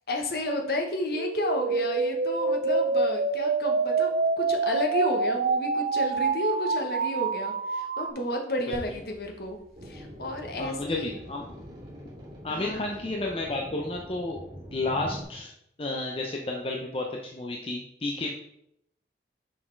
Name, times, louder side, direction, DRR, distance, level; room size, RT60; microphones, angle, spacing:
voice 1, 0.1-11.1 12.5-12.8, left 1 dB, 55° left, 3 dB, 1.0 m, -32 dB
sound 1, 1.1-8.1, right 4 dB, 50° right, 0.4 m, -26 dB
sound 2, 8.7-13.1, equal, 90° right, 1.1 m, -50 dB
sound 3, 9.7-15.2, equal, 25° right, 2.5 m, -43 dB
voice 2, 10.6-11.5 12.4-14.4 14.7-15.5 15.8-18.3, left 2 dB, 30° left, 0 dB, 0.6 m, -32 dB
6.2 x 4.1 x 4.5 m, 0.75 s
head